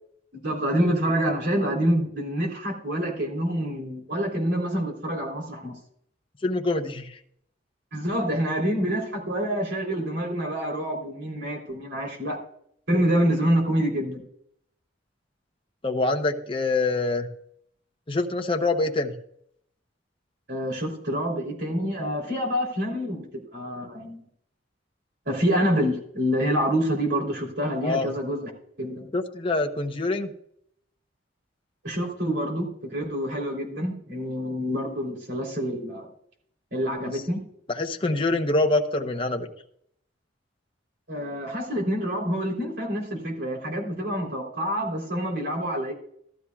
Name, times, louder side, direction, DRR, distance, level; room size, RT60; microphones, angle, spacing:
voice 1, 0.3-5.8 7.9-12.4 12.9-14.2 20.5-24.2 25.3-28.5 28.8-29.1 31.8-36.1 36.7-37.4 41.1-45.9, equal, 65° right, 0 dB, 3.5 m, -27 dB
voice 2, 6.4-7.2 15.8-17.3 18.1-19.1 27.8-28.1 29.1-30.3 37.7-39.5, left 2 dB, 30° left, 4 dB, 0.9 m, -25 dB
15.5 x 12.5 x 2.4 m, 0.68 s
head